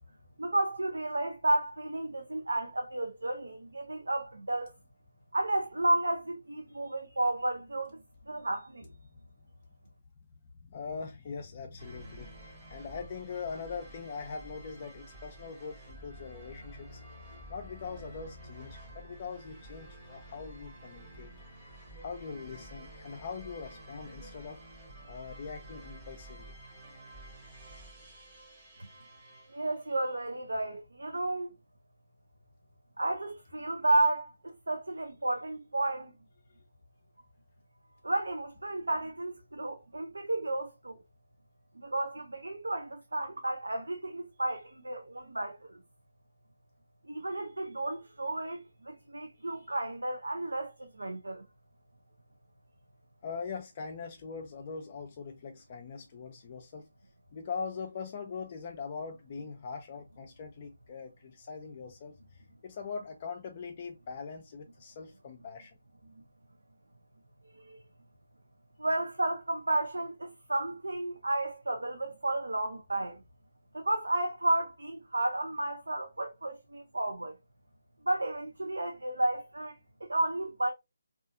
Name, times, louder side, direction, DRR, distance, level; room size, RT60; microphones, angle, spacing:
voice 1, 0.4-4.7 5.3-8.0 8.3-8.9 29.5-31.5 33.0-36.1 38.0-41.0 41.8-45.8 47.1-51.4 66.1-66.2 67.5-67.8 68.8-73.2 73.7-77.4 78.0-80.7, right 2 dB, 80° right, 0.4 m, -32 dB
voice 2, 10.6-12.3 12.6-17.0 17.5-21.3 22.0-24.6 25.1-26.5 53.2-56.9 57.3-65.8, left 5 dB, 35° left, 0.4 m, -42 dB
sound 1, 11.8-29.9, right 1 dB, 20° right, 0.8 m, -50 dB
2.6 x 2.3 x 2.4 m
figure-of-eight pair, 150°, 0 cm